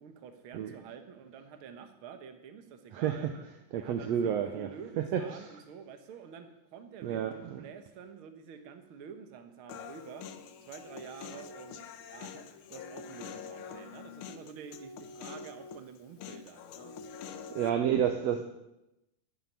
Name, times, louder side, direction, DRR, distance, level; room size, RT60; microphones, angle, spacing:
voice 1, 0.0-3.3 3.8-10.2 10.6-12.4 12.7-16.9, right 7 dB, 55° right, 1.8 m, -48 dB
voice 2, 2.9-3.3 3.7-4.7 5.0-5.5 7.0-7.6 17.6-18.4, right 9 dB, 70° right, 1.8 m, -30 dB
Human voice, 9.7-17.7, left 6 dB, 85° left, 1.2 m, -45 dB
12.0 x 7.5 x 9.7 m
omnidirectional pair, 3.5 m